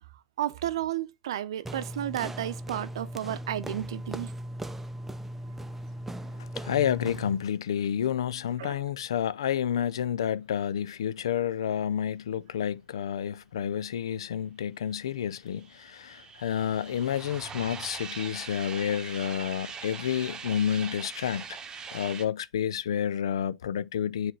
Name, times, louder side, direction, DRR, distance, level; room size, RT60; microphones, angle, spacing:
voice 1, 0.4-4.3 8.6-8.8, right 12 dB, 80° right, 0.6 m, -32 dB
sound 1, 1.6-7.4, right 1 dB, 10° right, 0.6 m, -38 dB
voice 2, 6.4-21.6 21.9-24.3, left 9 dB, 85° left, 0.4 m, -30 dB
sound 2, 15.1-22.3, right 6 dB, 25° right, 1.1 m, -42 dB
7.6 x 3.3 x 4.0 m
hypercardioid pair, 100°, 3 cm